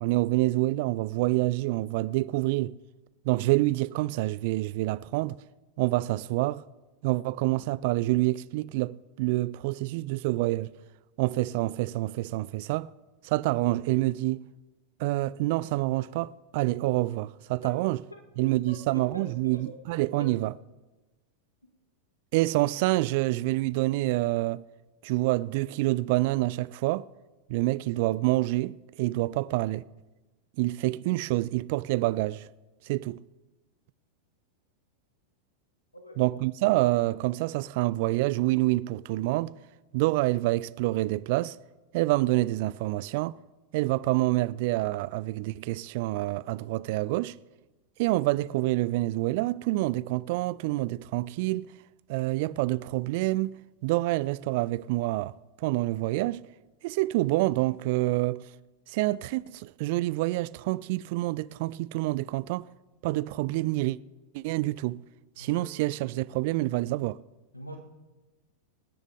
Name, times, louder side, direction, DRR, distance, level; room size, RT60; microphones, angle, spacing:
voice 1, 0.0-2.8 3.2-5.4 5.8-6.6 7.0-10.7 11.2-12.9 13.2-14.4 15.0-18.0 18.4-20.5 22.3-24.6 25.0-27.1 27.5-29.8 30.6-32.5 32.8-33.2 36.2-39.6 39.9-41.6 41.9-43.4 43.7-47.3 48.0-51.7 52.1-53.5 53.8-56.4 56.8-58.4 58.9-62.7 63.0-64.0 64.3-65.0 65.4-67.2, right 19 dB, 50° right, 0.4 m, -27 dB
voice 2, 18.4-19.8 20.1-20.3 35.9-36.2 65.4-65.7 67.5-67.8, equal, 85° left, 2.1 m, -44 dB
26.0 x 9.9 x 3.7 m
figure-of-eight pair, 90°, 0 cm